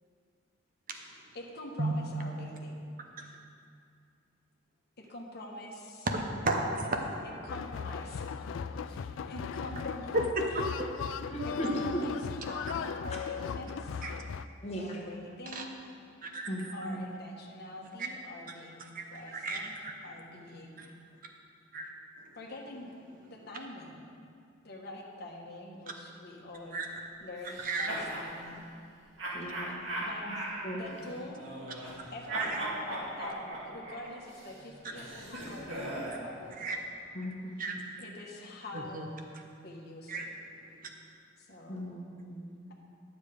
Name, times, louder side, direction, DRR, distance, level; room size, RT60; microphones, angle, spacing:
voice 1, 1.3-2.8 5.0-6.1 7.4-10.1 10.5-10.6 11.4-14.0 14.8-15.8 16.7-19.8 20.0-20.9 22.3-22.9 23.3-24.0 24.6-26.8 27.2-28.7 30.0-30.2 30.7-31.5 32.1-36.9 38.0-39.1 39.6-40.2 41.4-41.9, left 2 dB, 55° left, -1 dB, 1.3 m, -45 dB
voice 2, 6.1-7.0 10.1-11.3 14.0-14.1 15.5-15.6 16.2-16.7 18.0-18.1 18.8-19.0 19.3-19.9 20.8-20.9 21.7-22.0 22.2-22.3 26.7-26.9 27.6-27.9 32.3-32.6 36.1-36.2 36.6-36.8 37.6-37.8 38.7-39.1 40.1-40.3, right 2 dB, 45° right, 3 dB, 0.9 m, -33 dB
sound 1, 7.5-14.4, left 6 dB, 75° left, 0.3 m, -37 dB
voice 3, 11.3-11.7 14.6-15.0 16.5-17.0 29.3-29.8 30.3-30.4 30.6-30.9 37.1-37.8 41.7-42.7, equal, 35° left, -2 dB, 1.4 m, -38 dB
sound 2, 27.4-28.3 29.2-32.0 32.3-36.2, right 1 dB, 70° right, 2.1 m, -39 dB
10.0 x 7.2 x 5.1 m, 2.4 s
head